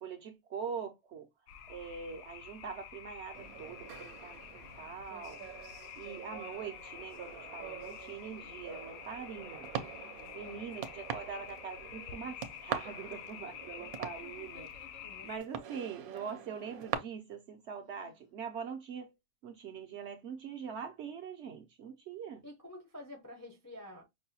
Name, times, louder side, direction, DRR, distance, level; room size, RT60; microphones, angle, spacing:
voice 1, 0.0-1.3 1.7-5.4 6.0-9.7 10.3-15.0 15.2-19.1 19.4-22.4, right 6 dB, 65° right, 0.7 m, -43 dB
sound 1, 1.5-15.4, left 9 dB, 70° left, 0.9 m, -48 dB
sound 2, 3.3-16.9, right 9 dB, 80° right, 1.0 m, -44 dB
sound 3, 8.3-8.5 9.8-10.7 11.8-12.4 13.7-15.5 16.2-16.6 17.8-18.3, left 5 dB, 90° left, 2.2 m, -62 dB
voice 2, 22.4-24.0, left 1 dB, 25° left, 0.4 m, -49 dB
5.3 x 2.2 x 2.7 m
omnidirectional pair, 1.5 m